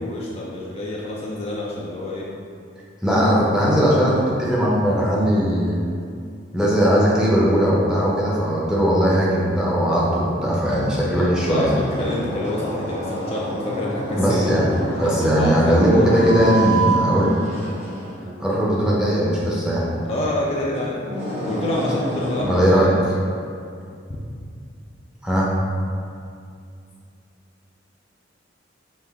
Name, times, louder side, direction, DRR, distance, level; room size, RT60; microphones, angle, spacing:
voice 1, 0.0-2.3 10.7-16.2 20.1-21.0 21.4-23.0, left 1 dB, 35° left, -4 dB, 0.4 m, -27 dB
voice 2, 3.0-5.7 6.5-11.8 14.1-14.6 15.0-17.3 18.4-19.8 22.4-22.9 25.2-25.5, equal, 5° right, -7 dB, 0.7 m, -19 dB
sound 1, 11.4-22.4, right 2 dB, 35° right, 1.1 m, -29 dB
5.4 x 2.5 x 3.5 m, 2.4 s
head